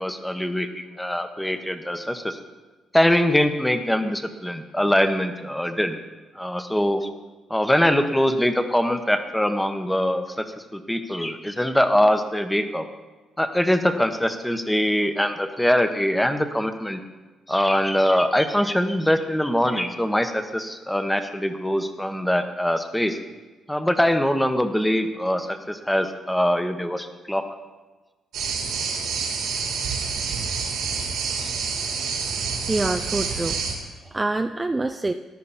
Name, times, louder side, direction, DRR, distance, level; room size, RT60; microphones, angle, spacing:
voice 1, 0.0-2.4 2.9-6.0 6.3-7.1 7.5-10.4 10.7-12.8 13.4-17.0 17.5-23.2 23.7-27.4, equal, 5° left, 8 dB, 1.1 m, -23 dB
sound 1, 28.3-33.7, right 5 dB, 85° right, 2.8 m, -28 dB
voice 2, 32.7-33.6 34.1-35.1, right 2 dB, 20° right, 7 dB, 0.5 m, -25 dB
14.5 x 10.5 x 4.3 m, 1.2 s
cardioid pair, 90°, 0 cm